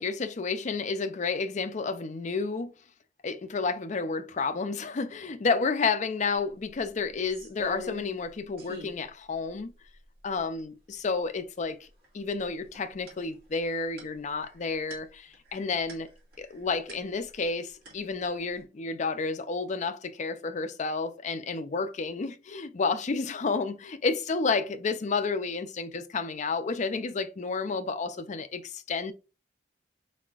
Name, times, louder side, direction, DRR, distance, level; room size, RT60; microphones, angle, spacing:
voice 1, 0.0-2.7 3.2-9.7 10.2-11.9 12.1-16.1 16.4-29.1, left 4 dB, 40° left, 0.4 m, -31 dB
sound 1, 6.4-6.5 6.8-8.3 8.6-9.0 9.5-9.6 9.9-10.6 11.7-12.0 12.3-17.5 17.8-18.6, left 2 dB, 55° right, 2.1 m, -44 dB
4.2 x 4.0 x 2.4 m
head